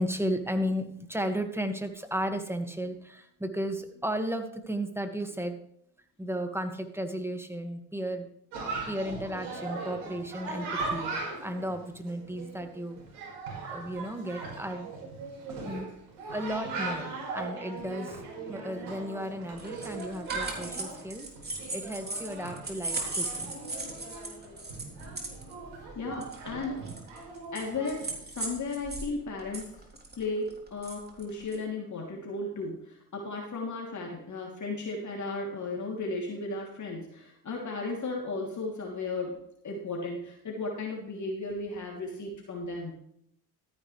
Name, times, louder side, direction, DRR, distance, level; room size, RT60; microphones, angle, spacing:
voice 1, 0.0-5.6 6.2-8.3 8.9-11.2 11.4-13.0 13.7-14.9 15.6-15.9 16.3-17.1 17.3-18.2 18.5-21.3 21.5-23.5, equal, 5° right, 6 dB, 2.0 m, -34 dB
Chatter, 8.5-28.1, right 3 dB, 75° right, 5.4 m, -39 dB
sound 1, 19.6-29.1 29.4-31.6, right 2 dB, 20° right, 3.7 m, -37 dB
voice 2, 25.9-26.8 27.5-29.8 30.2-39.4 39.6-43.0, left 3 dB, 40° left, -1 dB, 3.2 m, -35 dB
13.5 x 10.5 x 3.4 m, 0.69 s
hypercardioid pair, 70°, 46 cm